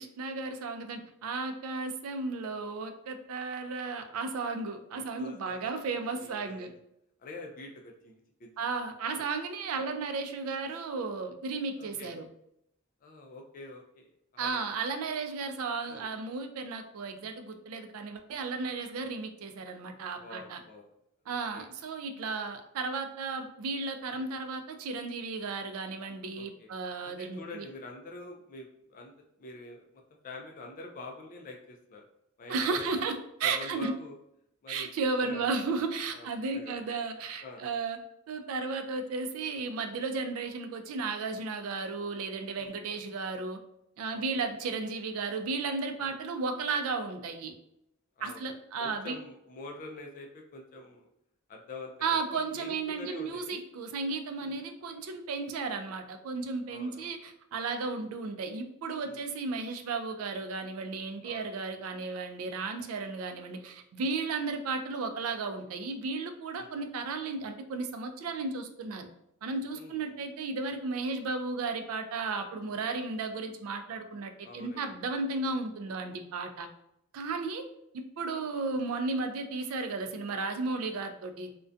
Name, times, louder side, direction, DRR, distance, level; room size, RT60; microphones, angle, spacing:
voice 1, 0.0-6.7 8.6-12.3 14.4-20.6 21.3-27.6 32.5-33.9 34.7-38.0 38.3-43.6 44.0-47.5 48.2-49.2 52.0-69.1 69.4-76.7 77.1-77.6 77.9-81.5, right 4 dB, 85° right, 7 dB, 0.4 m, -34 dB
voice 2, 4.9-5.7 6.2-6.8 7.2-8.5 11.8-12.1 13.0-14.1 14.3-14.7 15.9-16.1 20.2-20.9 21.3-21.7 24.1-24.3 26.4-26.7 27.2-29.1 29.4-32.0 32.4-33.0 33.4-34.2 34.6-34.9 35.2-35.5 36.1-36.3 36.5-36.8 37.4-37.7 42.6-42.8 44.1-44.4 46.0-46.2 48.2-51.1 51.5-52.2 52.5-53.6 54.4-54.6 56.7-57.1 59.0-59.2 61.2-61.5 66.6-66.9 69.7-70.1 74.4-74.9, left 2 dB, 40° left, 2 dB, 0.3 m, -46 dB
2.3 x 2.2 x 2.5 m, 0.79 s
head